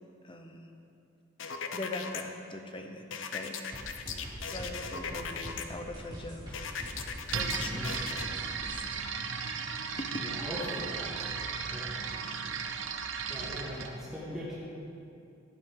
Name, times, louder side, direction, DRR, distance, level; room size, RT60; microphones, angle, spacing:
voice 1, 0.2-0.7 1.7-3.1 3.3-6.6 7.3-7.9 8.6-9.0 10.0-10.2, left 2 dB, 25° left, 4 dB, 0.9 m, -42 dB
sound 1, 1.4-2.2 3.1-5.6 6.5-8.3, left 6 dB, 75° left, 0.8 m, -38 dB
sound 2, 3.7-8.8, equal, 25° right, 3.1 m, -44 dB
sound 3, 7.3-13.9, right 6 dB, 80° right, 0.8 m, -36 dB
voice 2, 7.6-7.9 10.2-11.3 11.7-11.9 12.7-12.8 13.3-14.5, equal, 5° right, -11 dB, 1.9 m, -40 dB
15.5 x 11.0 x 3.8 m, 2.6 s
head